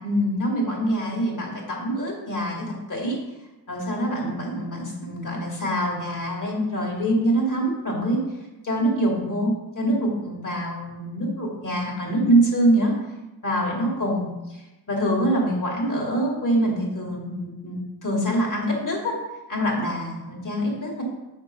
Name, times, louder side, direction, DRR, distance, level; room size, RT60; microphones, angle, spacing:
voice 1, 0.0-3.2 3.7-8.2 8.6-12.9 13.4-14.6 14.9-19.2 19.5-21.0, right 1 dB, 45° left, -1 dB, 2.7 m, -25 dB
7.2 x 5.3 x 5.4 m, 1.0 s
cardioid pair, 50°, 42 cm